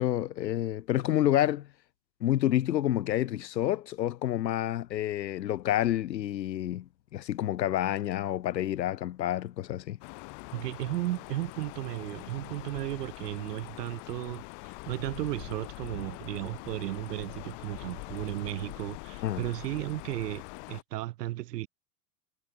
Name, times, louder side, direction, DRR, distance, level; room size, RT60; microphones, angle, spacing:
voice 1, 0.0-1.7 2.2-10.0 19.2-19.4, left 12 dB, 90° left, 1.5 m, -29 dB
sound 1, 10.0-20.8, left 40 dB or more, 55° left, 5.4 m, -44 dB
voice 2, 10.5-20.4 20.7-21.7, right 16 dB, 70° right, 3.0 m, -35 dB
hypercardioid pair, 115°, 49 cm